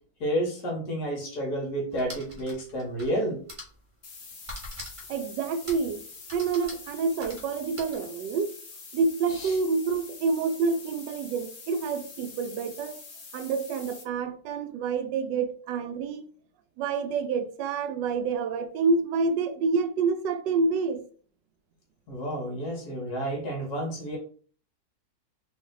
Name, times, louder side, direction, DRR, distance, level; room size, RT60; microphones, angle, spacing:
voice 1, 0.2-3.4 9.3-9.6 22.1-24.2, right 1 dB, 65° left, 1.9 m, -30 dB
sound 1, 1.9-3.2 3.5-3.8 4.5-5.2 5.7-5.9 6.3-8.0, left 1 dB, 25° right, 0.8 m, -42 dB
sound 2, 4.0-14.0, left 4 dB, 50° left, 0.6 m, -45 dB
voice 2, 5.1-6.0 6.3-8.5 8.9-13.0 13.3-16.3 16.8-21.0, right 4 dB, 85° right, 1.2 m, -28 dB
3.9 x 2.6 x 3.9 m
omnidirectional pair, 1.9 m